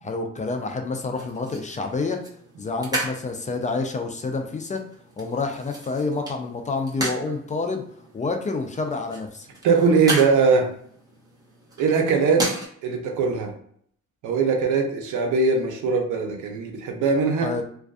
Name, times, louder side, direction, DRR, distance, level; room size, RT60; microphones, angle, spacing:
voice 1, 0.0-2.2 2.6-4.8 5.2-7.8 8.1-9.5 17.4-17.6, left 3 dB, 25° left, 4 dB, 0.4 m, -28 dB
sound 1, 1.2-12.7, right 2 dB, 15° right, 0.9 m, -35 dB
voice 2, 9.6-10.7 11.8-13.5 14.2-17.5, right 4 dB, 80° right, 3 dB, 0.7 m, -21 dB
2.5 x 2.3 x 2.3 m, 0.63 s
cardioid pair, 90°, 30 cm